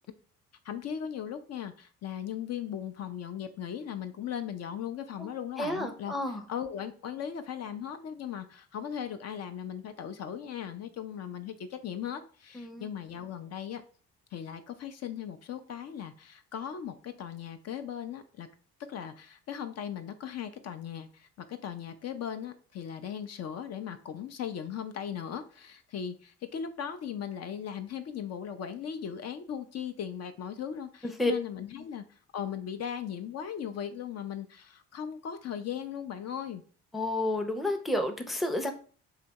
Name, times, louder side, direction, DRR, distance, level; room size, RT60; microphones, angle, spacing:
voice 1, 0.6-6.1 6.5-13.8 14.3-18.5 18.9-32.0 32.3-36.6, left 8 dB, 50° left, 8 dB, 0.5 m, -38 dB
voice 2, 5.6-6.4 12.5-12.9 31.2-31.3 36.9-38.7, left 1 dB, ahead, 5 dB, 0.5 m, -30 dB
3.3 x 2.8 x 4.0 m, 0.42 s
supercardioid pair, 75°, 32 cm